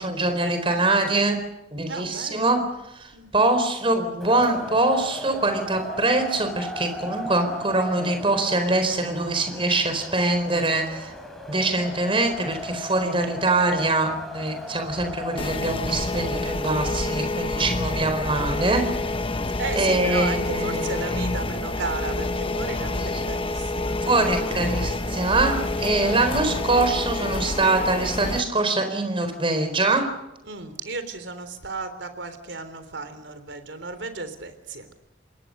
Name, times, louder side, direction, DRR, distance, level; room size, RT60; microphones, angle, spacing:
voice 1, 0.0-1.4 1.7-2.7 2.9-11.1 11.5-18.9 19.8-21.2 24.1-30.1, right 2 dB, 30° right, 7 dB, 4.3 m, -23 dB
voice 2, 1.9-2.7 3.1-3.3 17.6-17.7 19.6-25.3 26.0-26.3 30.4-34.9, right 3 dB, 75° right, 10 dB, 3.6 m, -35 dB
Wind, 4.2-15.4, left 1 dB, ahead, 4.7 m, -37 dB
sound 1, 15.4-28.4, left 2 dB, 30° left, 1.0 m, -28 dB
27.5 x 21.5 x 6.7 m, 0.90 s
head